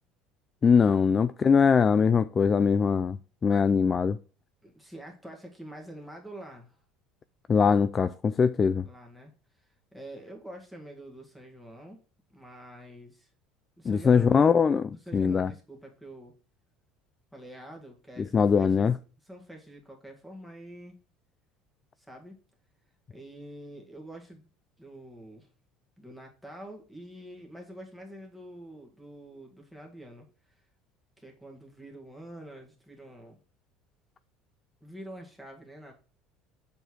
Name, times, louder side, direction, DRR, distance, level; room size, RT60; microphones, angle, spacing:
voice 1, 0.6-3.2 3.4-4.2 7.5-8.9 13.9-14.8 15.1-15.5 18.2-19.0, left 6 dB, 25° left, 0.3 m, -22 dB
voice 2, 4.6-6.8 8.8-9.3 9.9-12.0 12.3-13.3 13.8-14.6 14.9-16.3 17.3-18.9 19.2-21.0 22.0-22.4 23.1-24.5 24.8-25.5 26.0-30.6 31.2-33.4 34.8-35.9, right 1 dB, ahead, 2.0 m, -46 dB
7.9 x 4.4 x 4.7 m
cardioid pair, 135°, 0 cm